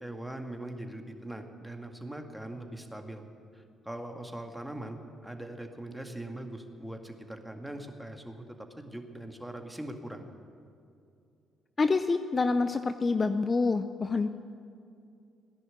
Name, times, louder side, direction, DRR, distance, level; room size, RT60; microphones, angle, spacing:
voice 1, 0.0-3.2 3.5-10.3, right 1 dB, 5° right, 4 dB, 2.0 m, -41 dB
voice 2, 11.8-14.3, left 4 dB, 35° left, 10 dB, 0.6 m, -27 dB
17.0 x 10.5 x 8.1 m, 2.5 s
hypercardioid pair, 50°, 0 cm